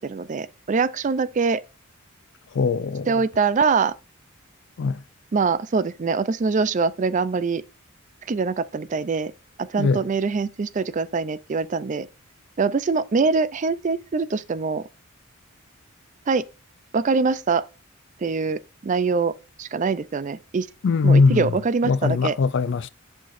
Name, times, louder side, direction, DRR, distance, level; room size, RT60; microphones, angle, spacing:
voice 1, 0.0-1.6 3.1-3.9 5.3-7.6 8.3-9.3 9.6-12.1 12.6-14.8 16.3-16.4 16.9-17.6 18.2-19.3 19.6-20.7 21.0-22.4, right 4 dB, 35° right, 0.4 m, -23 dB
voice 2, 2.5-3.1 4.8-5.0 9.8-10.0 20.8-21.5 21.8-22.9, left 4 dB, 55° left, 0.4 m, -20 dB
7.5 x 5.8 x 2.6 m
head